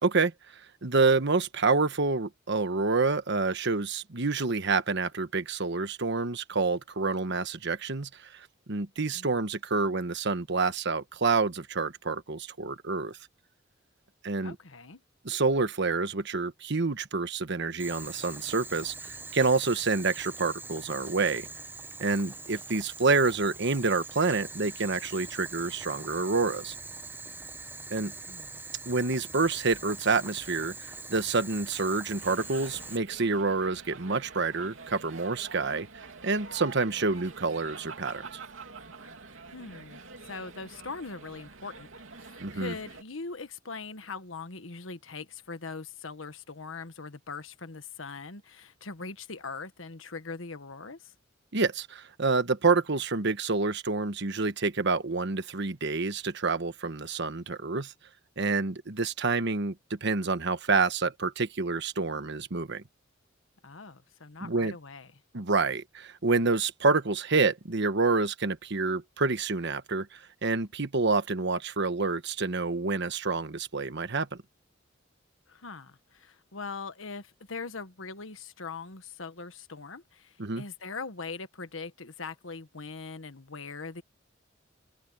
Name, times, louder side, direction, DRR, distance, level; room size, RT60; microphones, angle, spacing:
voice 1, 0.0-13.2 14.2-14.5 15.2-21.5 22.0-26.7 27.9-28.1 28.9-38.4 42.4-42.7 51.5-57.9 58.4-62.8 64.4-64.7 65.3-74.4 80.4-80.6, right 3 dB, 60° right, 1.3 m, -28 dB
voice 2, 14.4-15.0 28.3-28.6 39.5-51.1 63.6-65.1 75.5-84.0, left 4 dB, 80° left, 1.5 m, -41 dB
Boiling, 17.8-33.0, right 3 dB, 10° right, 0.7 m, -43 dB
sound 1, 32.2-43.0, right 4 dB, 80° right, 3.0 m, -46 dB
head